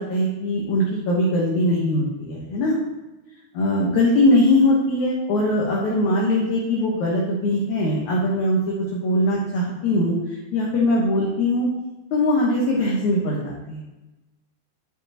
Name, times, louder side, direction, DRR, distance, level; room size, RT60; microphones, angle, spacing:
voice 1, 0.0-2.8 3.5-8.6 8.9-10.2 10.5-11.7 12.1-13.8, left 1 dB, 65° left, -4 dB, 2.1 m, -21 dB
12.5 x 5.4 x 2.9 m, 1.1 s
omnidirectional pair, 4.6 m